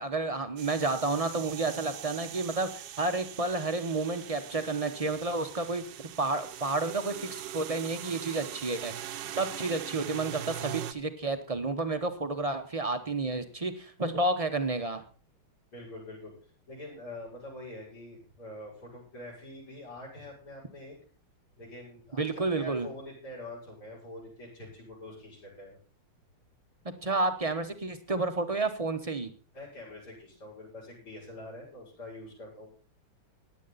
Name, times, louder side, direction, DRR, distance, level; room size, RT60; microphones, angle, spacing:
voice 1, 0.0-5.8 6.2-15.0 22.2-22.9 27.0-29.3, right 3 dB, 40° right, 8 dB, 0.5 m, -31 dB
sound 1, 0.6-10.9, right 11 dB, 70° right, 1.3 m, -42 dB
voice 2, 15.7-16.3 16.7-21.0 21.6-25.8 29.5-32.7, left 1 dB, 85° left, -2 dB, 6.9 m, -45 dB
15.5 x 10.5 x 4.1 m, 0.39 s
omnidirectional pair, 2.3 m